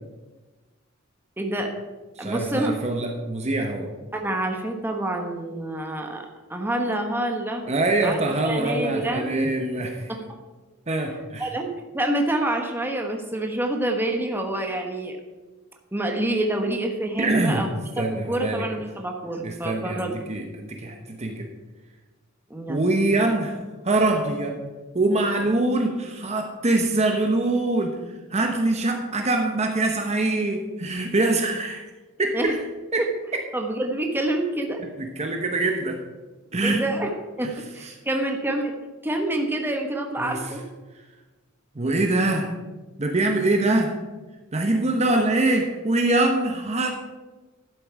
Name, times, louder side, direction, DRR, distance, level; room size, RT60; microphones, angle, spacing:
voice 1, 1.4-1.7 2.2-2.7 4.1-7.7 8.0-8.2 8.4-9.3 10.1-10.4 11.4-11.7 11.9-15.2 15.9-17.7 18.3-20.3 22.5-22.8 32.3-32.5 33.0-33.1 33.5-34.8 36.6-38.7 39.0-40.6, right 1 dB, 10° right, 3 dB, 1.2 m, -27 dB
voice 2, 2.2-3.9 7.6-10.1 10.9-11.5 17.2-17.7 18.0-18.6 19.4-21.5 22.7-24.6 24.9-28.0 28.3-31.8 32.2-32.6 32.9-33.0 35.0-36.0 36.5-36.9 37.8-37.9 40.2-40.4 41.7-42.5 43.0-43.9 44.5-46.9, right 2 dB, 35° right, 3 dB, 1.0 m, -24 dB
11.5 x 7.8 x 4.8 m, 1.2 s
head